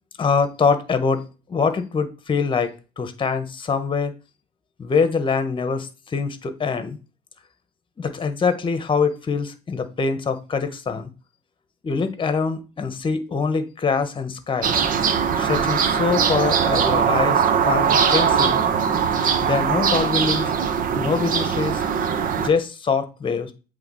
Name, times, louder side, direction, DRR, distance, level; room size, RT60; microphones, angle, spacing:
voice 1, 0.2-4.1 4.8-7.0 8.0-11.1 11.8-14.8 15.4-18.6 19.4-20.5 20.9-21.8 22.4-23.5, left 5 dB, 30° left, 1.2 m, -24 dB
sound 1, 14.6-22.5, right 7 dB, 55° right, 1.0 m, -21 dB
8.2 x 3.4 x 5.4 m
cardioid pair, 110°, 17 cm